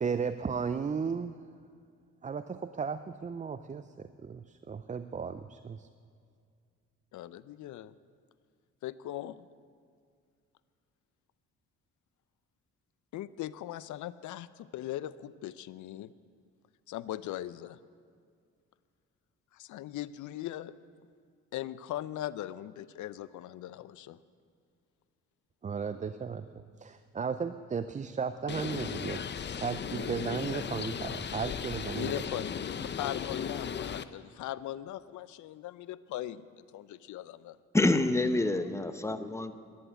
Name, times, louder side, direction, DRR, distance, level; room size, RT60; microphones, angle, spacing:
voice 1, 0.0-1.5 2.2-5.9 25.6-29.3 29.6-32.1 32.8-32.9, right 6 dB, 25° right, 11 dB, 0.5 m, -35 dB
voice 2, 7.1-7.9 8.8-9.5 13.1-16.1 16.9-17.8 19.5-20.7 21.5-24.2 31.9-32.6 33.0-37.6, left 13 dB, 75° left, 17 dB, 0.6 m, -39 dB
Bird, 28.5-34.0, left 7 dB, 35° left, 0.6 m, -36 dB
voice 3, 37.7-39.5, left 2 dB, 10° left, 10 dB, 0.9 m, -27 dB
11.5 x 10.5 x 9.9 m, 2.2 s
cardioid pair, 90°, 30 cm